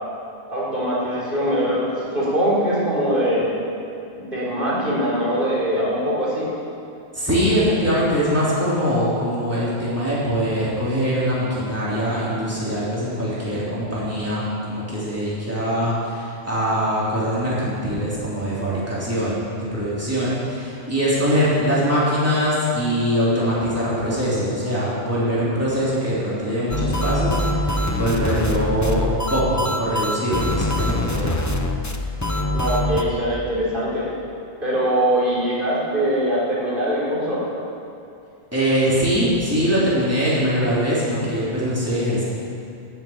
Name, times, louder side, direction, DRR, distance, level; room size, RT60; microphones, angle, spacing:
voice 1, 0.5-3.5 4.1-6.5 32.5-34.1 34.6-37.4, equal, 55° right, -8 dB, 4.3 m, -22 dB
voice 2, 7.1-31.3 38.5-42.2, equal, 15° right, -9 dB, 3.6 m, -22 dB
sound 1, 26.7-33.0, left 1 dB, 20° left, 0.8 m, -23 dB
14.0 x 8.0 x 8.9 m, 2.5 s
omnidirectional pair, 1.1 m